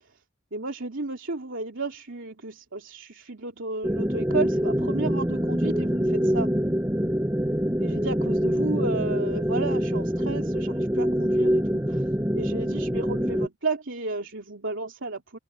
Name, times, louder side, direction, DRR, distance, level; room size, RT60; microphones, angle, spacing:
voice 1, 0.5-6.5 7.8-12.0 12.3-15.4, right 3 dB, 75° right, 2.9 m, -33 dB
sound 1, 3.8-13.5, equal, 10° right, 1.1 m, -25 dB
head